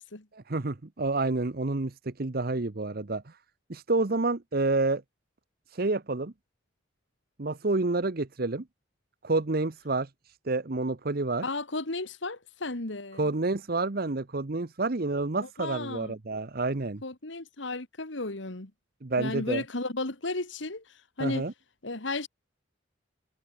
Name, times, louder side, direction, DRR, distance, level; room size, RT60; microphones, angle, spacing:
voice 1, 0.3-3.4 3.7-5.0 5.7-6.3 7.4-8.6 9.2-11.4 13.2-17.0 19.0-19.6 21.2-21.5, right 3 dB, 50° right, 0.9 m, -29 dB
voice 2, 11.4-13.3 15.4-16.2 17.0-18.7 19.2-21.5 21.8-22.3, left 2 dB, 70° left, 2.2 m, -34 dB
head